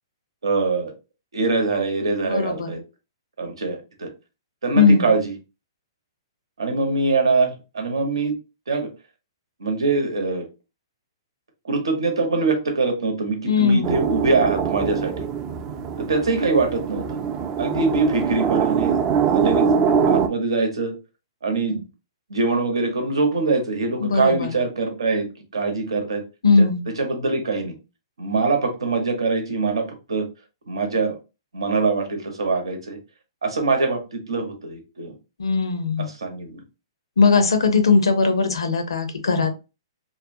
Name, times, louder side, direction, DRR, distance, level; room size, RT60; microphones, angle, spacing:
voice 1, 0.4-0.9 1.3-2.8 3.4-4.1 4.6-5.3 6.6-8.3 8.7-8.9 9.6-10.4 11.6-15.3 16.0-17.2 17.6-19.0 19.3-19.7 20.1-20.9 21.4-21.8 22.3-25.3 25.5-26.2 26.6-27.7 28.2-30.3 30.7-31.1 31.5-33.0 33.4-35.1 36.0-36.6, right 3 dB, 85° right, 4 dB, 0.8 m, -23 dB
voice 2, 2.2-2.8 4.7-5.1 13.5-14.0 24.0-24.5 26.4-26.8 35.4-36.1 37.2-39.5, left 4 dB, 85° left, 8 dB, 0.6 m, -19 dB
sound 1, 13.8-20.3, right 6 dB, 25° right, 0.3 m, -23 dB
2.6 x 2.1 x 2.6 m, 0.29 s
hypercardioid pair, 135°, 3 cm